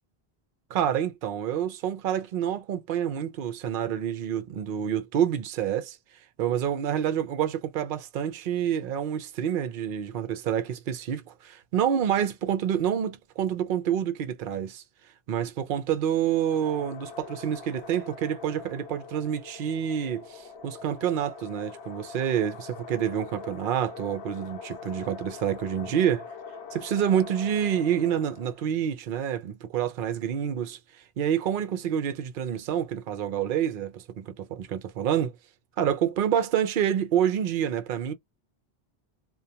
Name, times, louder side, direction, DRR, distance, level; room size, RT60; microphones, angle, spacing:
voice 1, 0.7-6.0 6.4-14.8 15.3-26.3 26.7-35.3 35.8-38.1, right 9 dB, 60° right, 0.7 m, -28 dB
sound 1, 16.2-28.7, left 5 dB, 85° left, 0.9 m, -43 dB
2.4 x 2.2 x 2.7 m
omnidirectional pair, 1.1 m